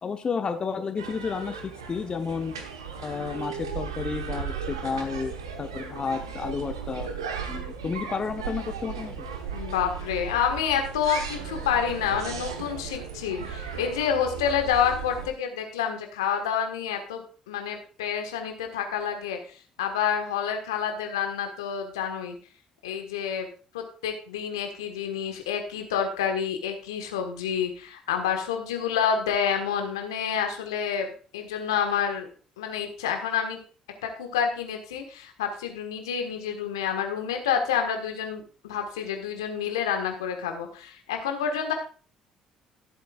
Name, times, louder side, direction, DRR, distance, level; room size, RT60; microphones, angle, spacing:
voice 1, 0.0-2.5 3.0-7.1 7.5-9.3, left 5 dB, 35° left, 7 dB, 1.0 m, -31 dB
sound 1, 1.0-15.3, right 6 dB, 85° right, 1.1 m, -36 dB
voice 2, 9.5-22.3 22.8-23.5 23.7-32.3 32.6-33.6 34.0-41.7, left 8 dB, 80° left, 5 dB, 1.5 m, -28 dB
15.0 x 8.2 x 2.4 m, 0.38 s
figure-of-eight pair, 50°, 3 cm